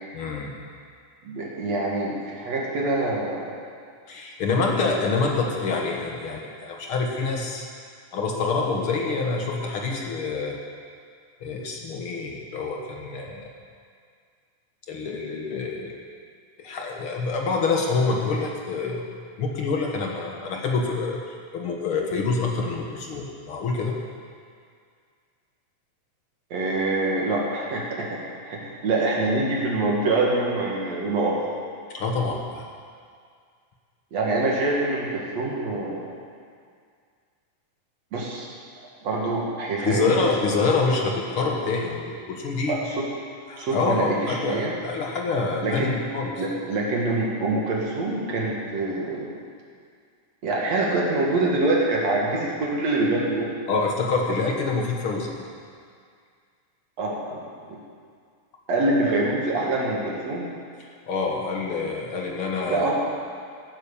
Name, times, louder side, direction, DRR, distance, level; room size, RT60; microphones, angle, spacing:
voice 1, 0.1-0.5 4.1-7.7 8.1-10.6 11.4-13.5 14.9-15.9 16.6-19.1 19.4-21.2 21.5-23.9 31.9-32.6 39.8-42.8 43.5-45.9 46.1-46.4 53.7-55.4 61.1-62.9, left 4 dB, 60° left, 0 dB, 1.5 m, -26 dB
voice 2, 1.2-3.6 26.5-31.4 34.1-36.1 38.1-38.5 39.0-40.2 42.7-43.0 43.6-44.7 45.6-45.9 46.4-49.4 50.4-53.6 57.0-57.4 57.7-57.8 58.7-60.5 62.7-62.9, right 2 dB, 55° right, -3 dB, 2.7 m, -25 dB
16.0 x 9.0 x 7.1 m, 2.1 s
omnidirectional pair, 4.1 m